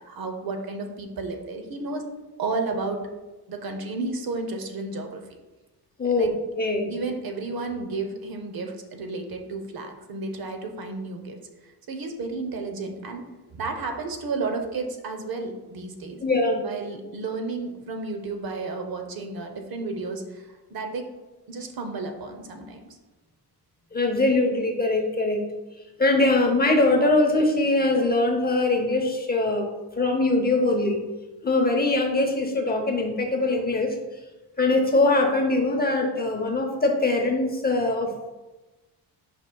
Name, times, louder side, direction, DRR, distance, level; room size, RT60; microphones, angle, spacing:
voice 1, 0.0-2.1 2.4-3.0 3.5-5.2 6.0-6.3 6.9-13.2 13.5-16.2 16.6-21.1 21.5-22.8, right 3 dB, 60° right, 4 dB, 0.8 m, -32 dB
voice 2, 6.0-6.3 6.6-6.9 16.2-16.6 23.9-25.4 26.0-29.7 30.0-31.0 31.4-33.9 34.6-38.3, left 2 dB, 25° left, 2 dB, 0.7 m, -22 dB
8.7 x 5.4 x 2.3 m, 1.1 s
wide cardioid pair, 165°, 41 cm